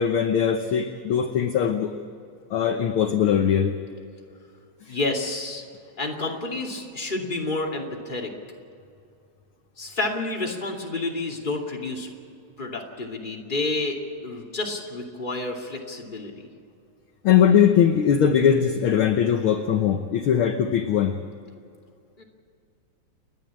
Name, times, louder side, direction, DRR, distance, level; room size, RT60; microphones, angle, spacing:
voice 1, 0.0-2.0 2.5-3.7 4.8-5.0 17.2-21.2, left 8 dB, 65° left, 6 dB, 1.4 m, -21 dB
voice 2, 4.9-5.6 6.0-8.3 9.8-12.1 12.6-16.5 22.2-22.3, left 2 dB, 15° left, 0 dB, 2.5 m, -30 dB
29.5 x 11.0 x 8.7 m, 2.4 s
omnidirectional pair, 3.3 m